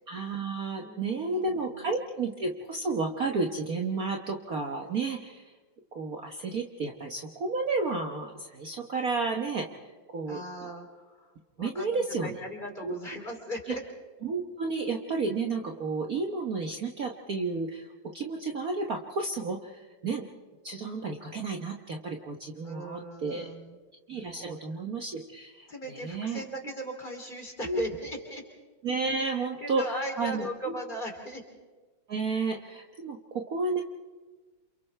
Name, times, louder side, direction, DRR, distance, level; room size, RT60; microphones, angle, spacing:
voice 1, 0.1-5.5 5.9-10.4 11.6-12.3 12.8-13.0 14.2-17.8 18.1-20.2 20.6-23.5 24.1-26.4 27.6-27.8 28.8-29.8 30.2-30.8 32.1-33.8, right 3 dB, 50° right, 2 dB, 1.4 m, -32 dB
voice 2, 0.8-1.9 10.3-11.3 11.6-13.8 22.6-23.7 24.4-24.6 25.7-28.4 29.3-31.4, equal, 20° left, 1 dB, 3.2 m, -38 dB
29.0 x 28.0 x 3.3 m, 1.3 s
omnidirectional pair, 2.3 m